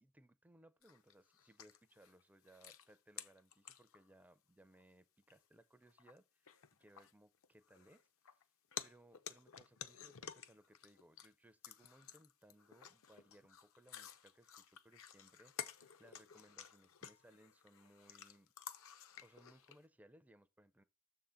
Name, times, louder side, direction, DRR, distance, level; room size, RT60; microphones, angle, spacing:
voice 1, 0.0-8.5 8.8-18.5 19.2-20.8, right 1 dB, 5° right, 0.4 m, -66 dB
sound 1, 0.8-4.2 4.8-4.9 5.3-5.4 5.8-6.2 6.5-8.4 8.7-11.3 11.6-19.8, left 8 dB, 65° left, 0.6 m, -53 dB
7.2 x 3.8 x 5.7 m
head